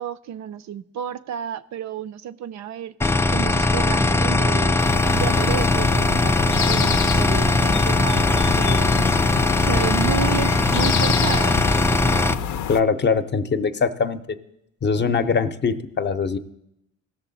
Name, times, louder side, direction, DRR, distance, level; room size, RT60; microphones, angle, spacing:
voice 1, 0.0-9.1 9.6-11.6, right 9 dB, 65° right, 0.5 m, -31 dB
sound 1, 3.0-12.4, left 2 dB, 10° left, 0.3 m, -20 dB
sound 2, 4.8-12.8, left 9 dB, 70° left, 0.5 m, -27 dB
voice 2, 12.7-14.2 14.8-16.4, left 5 dB, 35° left, 0.6 m, -22 dB
17.0 x 6.8 x 4.0 m
cardioid pair, 90°, 30 cm